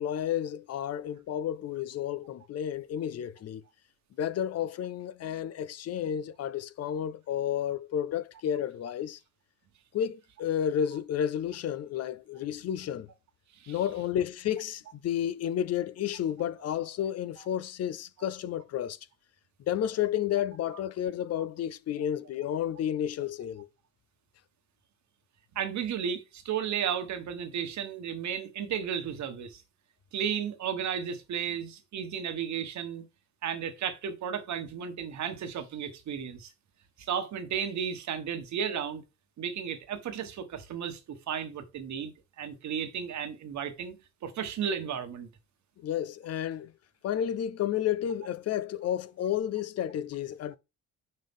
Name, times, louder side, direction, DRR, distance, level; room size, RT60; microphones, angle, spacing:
voice 1, 0.0-3.6 4.2-9.2 9.9-13.1 13.7-19.0 19.7-23.7 45.8-46.7 47.0-50.6, left 10 dB, 55° left, 0.5 m, -31 dB
voice 2, 25.5-29.6 30.1-33.0 33.4-36.5 37.0-39.0 39.4-45.3, right 8 dB, 70° right, 1.3 m, -34 dB
5.5 x 5.3 x 3.6 m
cardioid pair, 90°, 30 cm